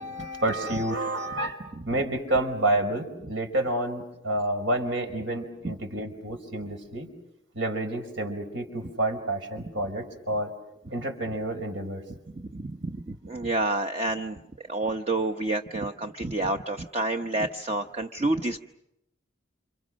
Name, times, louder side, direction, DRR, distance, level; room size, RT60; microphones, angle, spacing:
voice 1, 0.0-7.1 7.5-10.5 10.9-12.0, right 1 dB, 75° right, 6 dB, 5.2 m, -29 dB
voice 2, 12.3-14.4 14.7-18.6, right 2 dB, 30° right, 4 dB, 1.0 m, -29 dB
29.5 x 28.0 x 6.4 m, 0.85 s
head